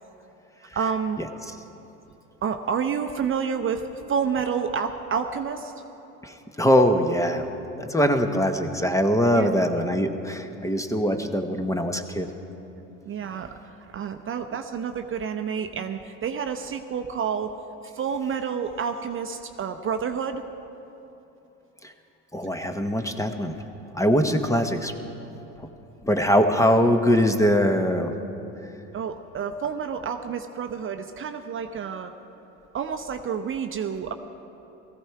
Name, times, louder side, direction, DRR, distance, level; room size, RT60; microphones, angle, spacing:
voice 1, 0.7-1.2 2.4-5.7 8.3-8.5 9.3-9.6 13.1-17.6 17.9-20.4 26.8-26.9 28.9-32.1 32.7-34.1, right 6 dB, 35° right, 6 dB, 0.7 m, -29 dB
voice 2, 6.2-7.4 7.8-12.3 22.3-23.5 23.9-24.9 25.6-25.7 26.0-28.1, equal, 10° left, 7 dB, 0.9 m, -22 dB
17.0 x 14.5 x 4.6 m, 3.0 s
supercardioid pair, 85°, 38 cm